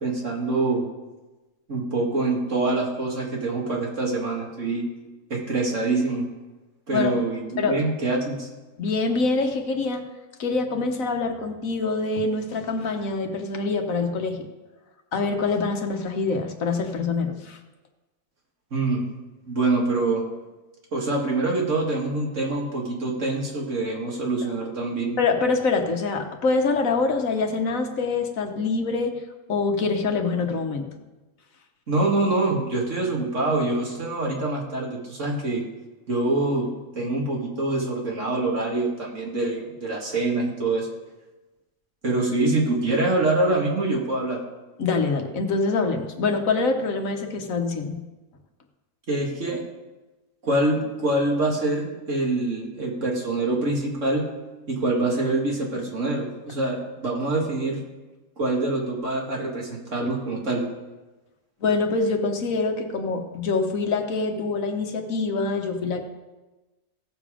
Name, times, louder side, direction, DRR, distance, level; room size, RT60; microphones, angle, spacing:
voice 1, 0.0-0.8 1.7-4.8 5.3-6.2 6.9-8.5 18.7-19.0 19.5-20.2 20.9-25.2 31.9-35.6 36.1-40.9 42.0-44.4 49.1-49.6 50.4-54.2 54.7-57.8 58.4-60.6, right 2 dB, 65° right, -1 dB, 2.4 m, -25 dB
voice 2, 8.8-10.1 10.4-14.5 15.1-17.6 25.2-29.2 29.5-30.9 44.8-48.0 61.6-66.0, left 4 dB, 75° left, 4 dB, 1.5 m, -25 dB
16.5 x 7.2 x 5.0 m, 1.1 s
omnidirectional pair, 1.4 m